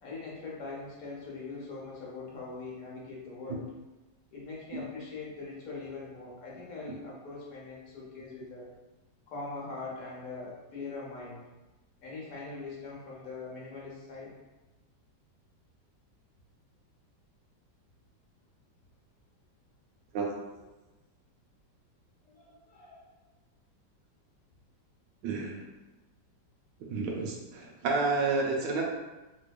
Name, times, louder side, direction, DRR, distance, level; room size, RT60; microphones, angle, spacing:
voice 1, 0.0-3.6 4.3-8.7 9.3-11.4 12.0-14.3 22.3-23.1, left 3 dB, 65° left, -4 dB, 1.0 m, -42 dB
voice 2, 25.2-25.6 26.9-28.8, right 4 dB, 80° right, -1 dB, 1.2 m, -30 dB
3.4 x 3.0 x 2.2 m, 1.1 s
omnidirectional pair, 1.9 m